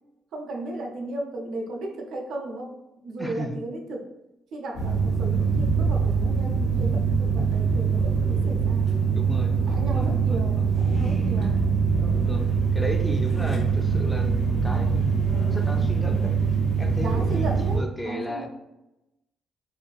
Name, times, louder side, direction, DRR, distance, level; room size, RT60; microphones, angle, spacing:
voice 1, 0.3-4.1 4.5-9.0 9.7-11.6 17.0-18.5, right 2 dB, 75° right, 2 dB, 0.5 m, -35 dB
voice 2, 3.2-3.6 9.2-10.6 12.1-12.4 12.7-16.4 16.8-18.5, equal, 10° left, 2 dB, 0.3 m, -34 dB
sound 1, 4.7-17.8, right 5 dB, 75° left, 1.0 m, -23 dB
2.5 x 2.4 x 2.3 m, 0.95 s
cardioid pair, 90°, 0 cm